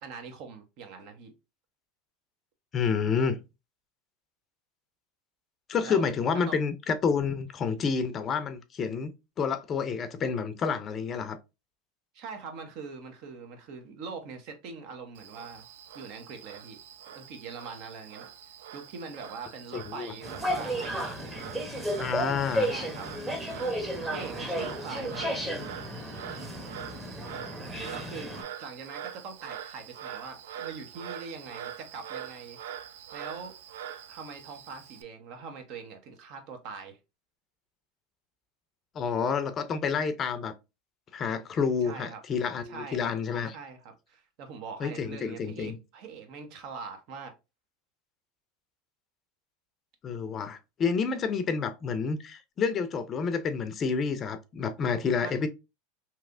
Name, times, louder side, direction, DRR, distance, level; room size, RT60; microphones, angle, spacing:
voice 1, 0.0-1.3 5.8-6.0 6.3-6.6 12.1-15.7 15.9-16.8 17.1-18.3 18.7-21.6 22.6-23.1 24.1-25.7 27.9-32.6 33.1-33.6 34.1-37.0 41.8-42.2 42.6-43.1 43.5-47.3 55.2-55.4, right 5 dB, 60° right, 0.9 m, -42 dB
voice 2, 2.7-3.4 5.7-9.1 9.4-11.4 19.7-20.1 22.0-22.7 38.9-40.5 41.1-43.5 44.8-45.8 50.0-55.5, left 5 dB, 35° left, 0.5 m, -29 dB
Frog, 15.2-35.0, right 9 dB, 80° right, 0.4 m, -44 dB
sound 1, 20.2-28.4, equal, 10° right, 0.9 m, -33 dB
3.2 x 2.8 x 2.4 m
supercardioid pair, 110°, 0 cm